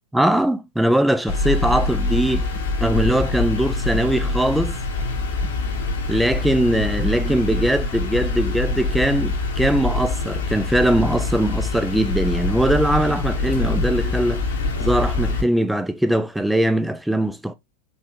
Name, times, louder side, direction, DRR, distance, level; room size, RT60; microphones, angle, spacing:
voice 1, 0.1-2.5 2.8-4.8 6.1-14.4 14.8-17.5, right 1 dB, 5° right, 0.4 m, -21 dB
sound 1, 1.3-15.4, left 3 dB, 60° left, 1.1 m, -24 dB
4.4 x 3.1 x 3.0 m
figure-of-eight pair, 90°, 0 cm